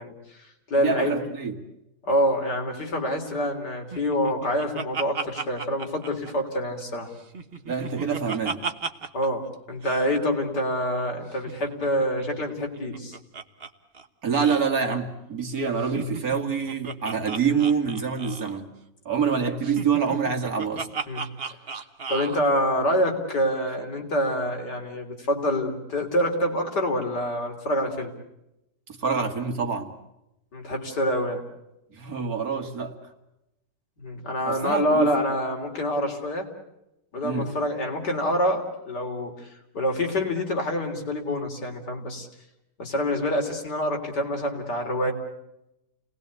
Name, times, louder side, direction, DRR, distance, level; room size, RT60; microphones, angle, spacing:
voice 1, 0.0-1.2 2.0-7.1 9.1-13.2 21.1-21.2 22.1-28.1 30.5-31.4 34.0-36.5 37.1-39.5 39.7-42.3 42.8-45.1, equal, 75° left, 2 dB, 3.9 m, -26 dB
voice 2, 0.8-1.6 7.7-8.7 14.2-18.7 19.1-20.9 29.0-29.9 31.9-33.0 34.4-35.2 37.2-37.5, right 6 dB, 55° right, 5 dB, 2.4 m, -26 dB
Laughter, 3.9-6.8 7.2-9.3 9.5-9.6 9.8-10.1 11.3-13.7 13.9-14.1 14.3-14.7 15.8-18.6 19.6-22.4, right 5 dB, 40° right, 1.3 m, -35 dB
29.0 x 19.5 x 8.3 m, 0.90 s
omnidirectional pair, 1.8 m